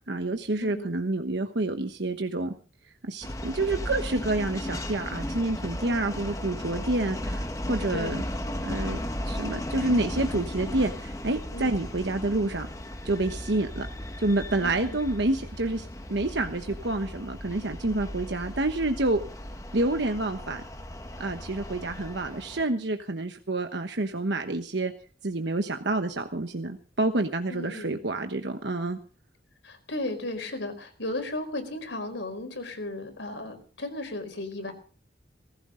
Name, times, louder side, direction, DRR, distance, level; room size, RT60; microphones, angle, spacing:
voice 1, 0.1-2.5 3.1-8.2 8.6-12.7 13.0-13.9 14.2-19.2 19.7-20.6 21.2-24.9 25.2-29.0, right 2 dB, 70° right, 6 dB, 1.1 m, -28 dB
sound 1, 3.2-22.6, left 1 dB, 20° left, 1.2 m, -36 dB
voice 2, 7.9-8.2 11.5-11.7 14.6-15.0 27.5-28.0 29.6-34.7, left 2 dB, 80° left, 6 dB, 4.6 m, -35 dB
19.5 x 15.5 x 3.9 m, 0.41 s
head